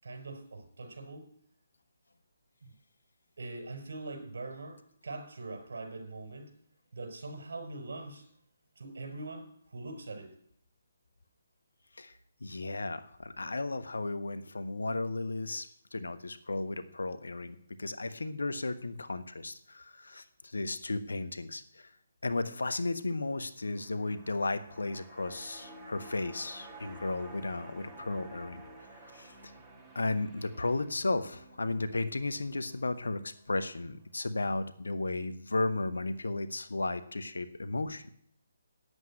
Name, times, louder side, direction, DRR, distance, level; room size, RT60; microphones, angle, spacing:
voice 1, 0.0-1.3 2.6-2.7 3.4-6.5 6.9-8.3 8.8-10.3, right 2 dB, 65° right, 5 dB, 5.5 m, -42 dB
voice 2, 12.4-21.9 22.2-28.6 29.0-29.5 29.9-38.1, left 2 dB, 80° left, 11 dB, 1.1 m, -34 dB
sound 1, 23.6-34.0 34.3-34.4, right 2 dB, 10° right, 1.8 m, -52 dB
9.4 x 8.2 x 8.7 m, 0.66 s
figure-of-eight pair, 145°, 0 cm